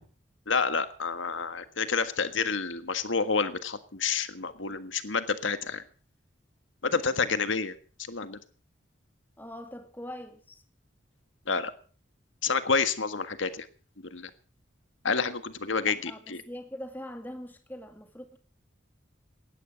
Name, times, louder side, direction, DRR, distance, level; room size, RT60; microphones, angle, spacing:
voice 1, 0.5-5.8 6.8-7.7 8.1-8.4 11.5-11.7 12.4-13.7 14.1-14.3 15.0-16.4, left 5 dB, 80° left, 11 dB, 1.6 m, -29 dB
voice 2, 9.4-10.6 15.9-18.4, equal, 10° left, 6 dB, 2.3 m, -42 dB
19.0 x 13.5 x 5.2 m, 0.40 s
head